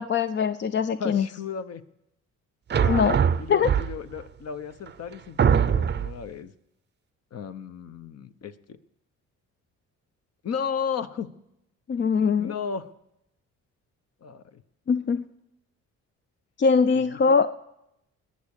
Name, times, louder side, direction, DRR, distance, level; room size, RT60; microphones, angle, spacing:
voice 1, 0.0-1.3 2.9-3.2 3.5-3.7 11.9-12.5 14.9-15.3 16.6-17.5, left 5 dB, 40° left, 12 dB, 0.5 m, -22 dB
voice 2, 1.0-1.8 2.7-6.5 7.3-8.8 10.4-11.3 12.4-12.9 14.2-14.6 16.9-17.0, left 6 dB, 55° left, 10 dB, 1.0 m, -34 dB
sound 1, 2.7-4.2 4.9-5.0 5.4-6.2, right 7 dB, 35° right, 0.6 m, -22 dB
20.5 x 7.3 x 6.6 m, 0.82 s
cardioid pair, 90°, 30 cm